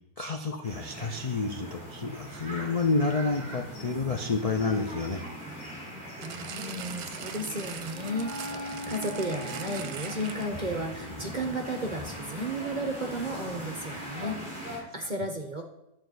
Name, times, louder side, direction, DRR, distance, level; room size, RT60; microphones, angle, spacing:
voice 1, 0.2-5.2, left 3 dB, 45° left, 3 dB, 0.4 m, -29 dB
sound 1, 0.6-14.8, right 1 dB, 5° right, 4.9 m, -41 dB
voice 2, 6.2-15.6, right 1 dB, 35° right, 4 dB, 0.8 m, -34 dB
sound 2, 6.2-10.7 11.4-11.5, right 9 dB, 70° right, 1.1 m, -42 dB
Wind instrument woodwind instrument, 7.9-14.5, left 1 dB, 20° left, 1.8 m, -44 dB
11.5 x 4.6 x 7.9 m, 0.86 s
omnidirectional pair, 1.7 m